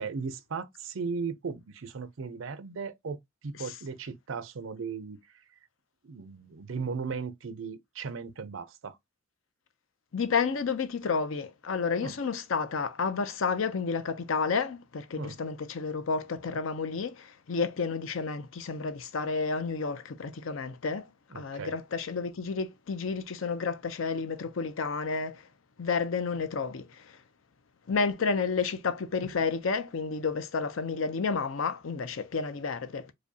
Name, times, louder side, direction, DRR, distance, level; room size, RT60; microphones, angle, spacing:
voice 1, 0.0-3.2 3.4-5.2 6.0-9.0 12.0-12.1 15.2-15.3 21.3-21.7, right 5 dB, 80° right, 0.6 m, -36 dB
voice 2, 10.1-21.1 21.3-25.5 25.8-27.2 27.9-33.1, left 5 dB, 85° left, 0.6 m, -31 dB
4.8 x 2.3 x 2.7 m
head